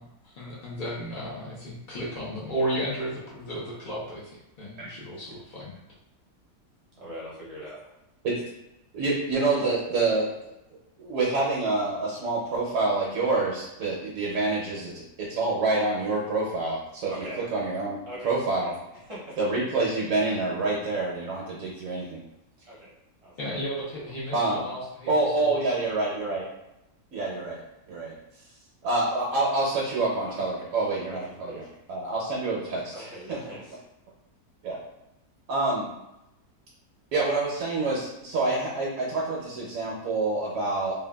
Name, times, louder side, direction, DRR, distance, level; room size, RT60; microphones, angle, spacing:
voice 1, 0.0-4.3 4.6-5.8 23.4-25.9, equal, 70° left, -7 dB, 0.4 m, -34 dB
voice 2, 7.0-7.8 17.1-17.4 18.1-18.3 18.6-18.7 19.1-19.4 22.7-22.9 23.2-23.3 30.2-30.5 31.0-31.8 32.9-33.8, equal, 35° right, -8 dB, 0.5 m, -41 dB
voice 3, 8.9-10.3 11.0-14.9 15.2-17.1 17.5-18.0 18.2-18.7 19.4-22.2 24.3-24.6 25.1-26.4 27.1-27.6 27.9-28.1 28.8-31.5 31.9-32.9 33.4-33.5 34.6-34.8 35.5-35.9 37.1-40.9, right 3 dB, 70° right, -5 dB, 1.0 m, -27 dB
3.2 x 2.2 x 2.2 m, 0.88 s
omnidirectional pair, 1.6 m